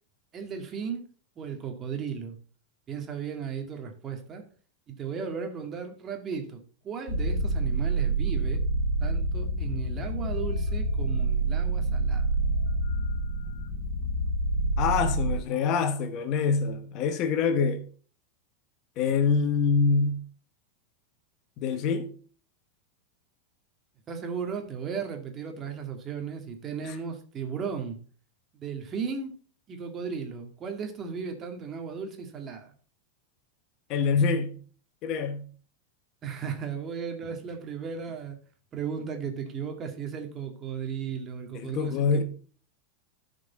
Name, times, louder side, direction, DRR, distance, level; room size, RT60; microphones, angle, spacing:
voice 1, 0.3-1.1 1.4-2.3 2.9-4.4 4.9-8.6 9.0-12.3 24.1-28.0 28.5-29.3 29.7-32.7 36.2-38.4 38.7-42.2, right 6 dB, 30° right, 2.1 m, -35 dB
sound 1, 7.1-15.4, right 2 dB, 70° left, 2.5 m, -27 dB
voice 2, 14.8-17.8 19.0-20.2 21.6-22.1 33.9-34.5 35.0-35.4 41.5-42.2, left 5 dB, 50° left, 1.1 m, -25 dB
12.5 x 5.2 x 4.2 m
hypercardioid pair, 105°, 0 cm